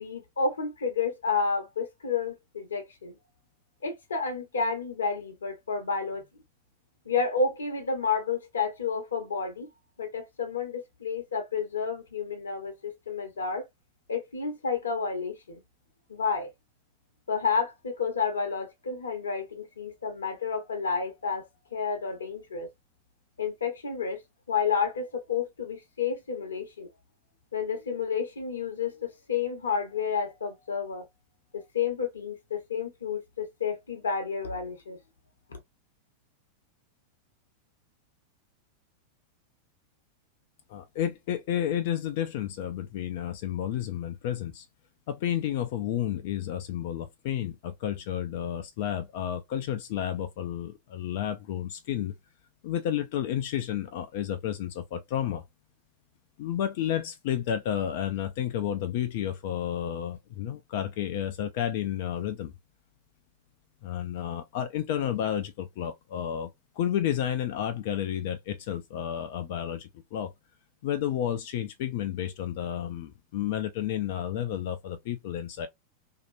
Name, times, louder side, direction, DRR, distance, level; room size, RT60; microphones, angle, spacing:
voice 1, 0.0-3.1 3.8-6.2 7.1-9.7 10.0-13.7 14.1-15.6 16.1-16.5 17.3-21.4 21.7-22.7 23.4-24.2 24.5-26.9 27.5-31.0 31.5-35.0, left 5 dB, 70° left, 0.8 m, -30 dB
voice 2, 40.7-44.7 45.1-52.1 52.6-55.4 56.4-62.5 63.8-70.3 70.8-75.7, left 10 dB, 50° left, 0.3 m, -31 dB
2.7 x 2.5 x 2.4 m
figure-of-eight pair, 90°, 0 cm